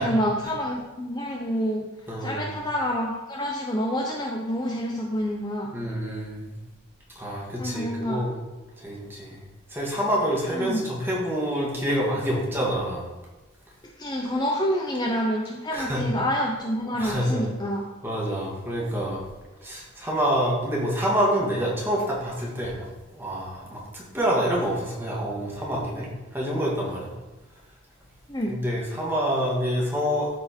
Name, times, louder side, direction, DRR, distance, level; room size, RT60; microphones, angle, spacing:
voice 1, 0.0-1.9 2.2-5.7 7.6-8.3 10.5-10.8 14.0-17.8 28.3-28.6, equal, 20° left, -1 dB, 0.7 m, -27 dB
voice 2, 2.1-2.6 5.7-6.6 7.2-8.4 8.8-9.4 9.7-13.1 15.7-16.1 16.9-17.5 18.0-19.2 19.6-22.9 23.1-27.1 28.5-30.3, equal, 10° right, -4 dB, 1.9 m, -27 dB
13.0 x 4.5 x 4.4 m, 1.1 s
head